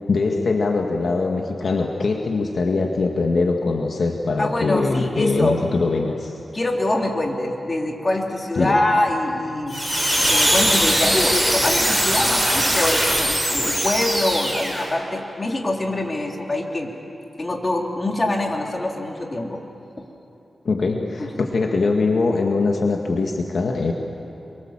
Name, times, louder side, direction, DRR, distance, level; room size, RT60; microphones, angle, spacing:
voice 1, 0.1-6.4 8.6-8.8 20.7-23.9, left 3 dB, 65° left, 2 dB, 1.8 m, -22 dB
voice 2, 4.4-5.6 6.5-9.8 10.2-16.9 17.4-19.6 21.2-21.5, left 1 dB, 30° left, 1 dB, 3.3 m, -24 dB
sound 1, 9.7-14.9, equal, ahead, 6.8 m, -20 dB
28.0 x 24.0 x 7.4 m, 2.9 s
wide cardioid pair, 80°, 0 cm